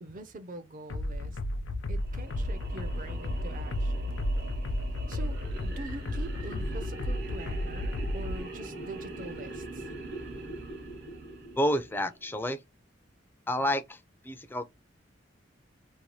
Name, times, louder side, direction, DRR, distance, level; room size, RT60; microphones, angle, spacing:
voice 1, 0.0-1.4 1.9-4.2 5.1-5.4 5.6-9.8, right 2 dB, 45° right, 0.6 m, -44 dB
sound 1, 0.9-8.4, left 1 dB, 75° left, 0.4 m, -33 dB
sound 2, 2.0-12.3, right 2 dB, 60° right, 0.9 m, -43 dB
voice 2, 11.6-12.6 13.5-14.0 14.2-14.7, left 1 dB, 10° left, 0.4 m, -29 dB
2.7 x 2.2 x 3.0 m
head